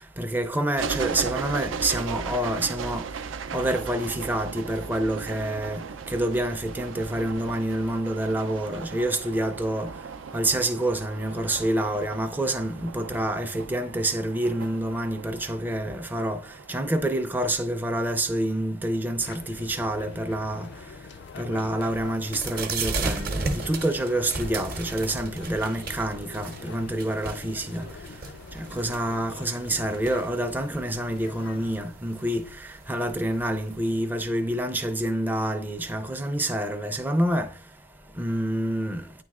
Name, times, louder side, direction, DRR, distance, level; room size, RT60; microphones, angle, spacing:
voice 1, 0.2-3.0 3.5-5.8 6.1-9.9 10.3-16.4 16.7-20.7 21.4-27.9 28.7-32.4 32.9-37.5 38.2-39.0, right 1 dB, 10° right, 0.4 m, -27 dB
sound 1, 0.8-17.3, right 5 dB, 85° right, 0.4 m, -37 dB
sound 2, 19.2-31.8, left 5 dB, 60° left, 0.3 m, -44 dB
sound 3, 21.9-33.8, right 3 dB, 50° right, 0.7 m, -36 dB
9.2 x 3.2 x 3.5 m
head